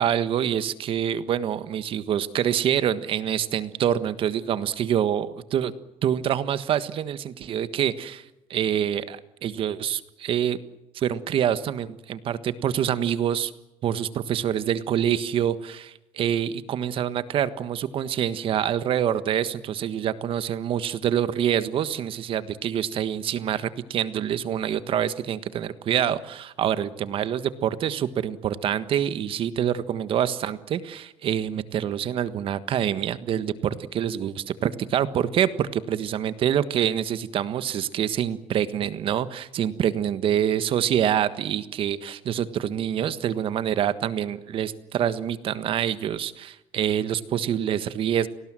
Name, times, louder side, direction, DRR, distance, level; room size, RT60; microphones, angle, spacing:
voice 1, 0.0-5.3 5.5-5.7 6.0-8.2 8.5-10.6 10.9-13.5 13.8-48.3, right 9 dB, 45° right, 13 dB, 1.5 m, -26 dB
30.0 x 19.0 x 7.6 m, 0.93 s
cardioid pair, 140°, 13 cm